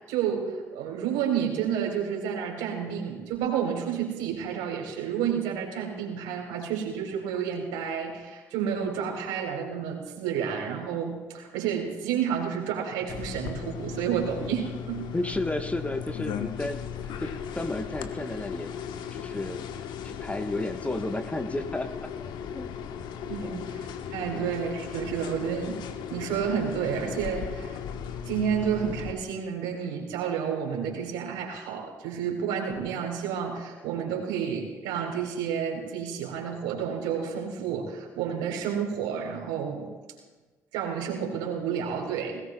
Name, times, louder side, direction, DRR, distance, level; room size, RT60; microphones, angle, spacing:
voice 1, 0.1-15.1 23.3-25.8 26.1-27.8 28.2-39.9 40.7-42.4, right 8 dB, 65° right, 1 dB, 3.7 m, -30 dB
sound 1, 13.1-29.1, left 8 dB, 60° left, 1.1 m, -37 dB
voice 2, 15.1-16.9 17.2-18.7 19.1-19.6 20.0-22.7 23.4-23.6 24.3-24.5, left 2 dB, 15° left, 6 dB, 1.2 m, -33 dB
21.0 x 18.5 x 2.3 m, 1.3 s
figure-of-eight pair, 50°, 9 cm